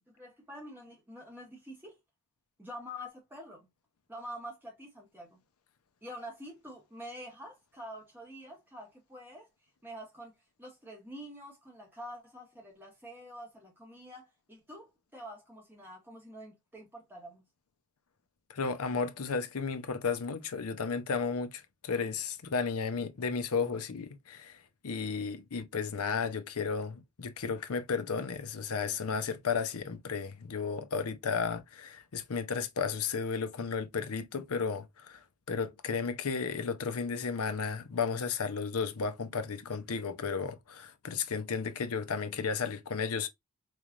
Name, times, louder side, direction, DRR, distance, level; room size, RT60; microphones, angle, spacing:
voice 1, 0.1-2.0 2.6-3.7 4.1-5.4 6.0-9.5 9.8-10.3 10.6-17.4, equal, 10° right, 1.6 m, -46 dB
voice 2, 18.5-24.6 24.8-35.2 35.5-43.3, left 5 dB, 70° left, 0.6 m, -33 dB
4.2 x 3.2 x 2.4 m
head